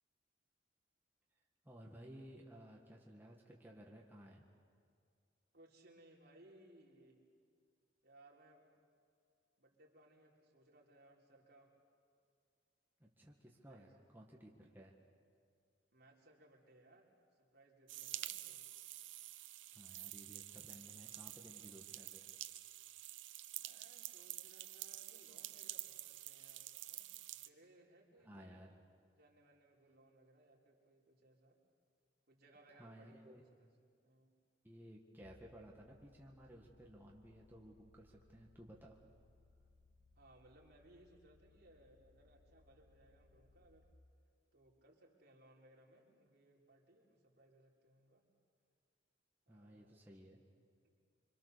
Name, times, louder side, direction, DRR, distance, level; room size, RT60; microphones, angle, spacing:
voice 1, 1.6-4.4 13.0-15.0 19.7-22.3 28.2-28.7 32.7-33.4 34.6-39.0 49.5-50.4, equal, 10° right, -2 dB, 1.7 m, -57 dB
voice 2, 5.5-7.3 8.0-8.7 9.6-11.8 13.7-14.0 15.9-18.6 23.6-28.6 29.2-31.6 32.3-33.8 34.0-34.4 40.2-44.0 44.5-48.3 49.5-50.0 50.8-51.1, right 1 dB, 55° right, -2 dB, 3.9 m, -66 dB
sound 1, 17.9-27.5, right 14 dB, 85° right, 0.8 m, -49 dB
sound 2, 35.2-43.9, left 3 dB, 35° left, 1.4 m, -69 dB
26.0 x 25.5 x 6.8 m, 2.2 s
head